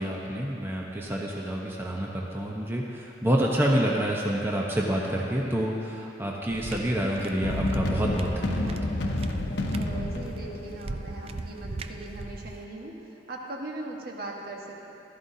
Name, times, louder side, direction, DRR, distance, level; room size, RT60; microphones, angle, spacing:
voice 1, 0.0-8.8, equal, 15° right, -3 dB, 0.9 m, -28 dB
sound 1, 6.5-12.6, right 3 dB, 35° right, 0.4 m, -38 dB
sound 2, 7.4-11.4, left 2 dB, 80° left, 0.9 m, -30 dB
voice 2, 9.7-12.9 13.3-14.9, right 2 dB, 60° right, -1 dB, 1.4 m, -39 dB
15.0 x 13.0 x 2.8 m, 2.8 s
head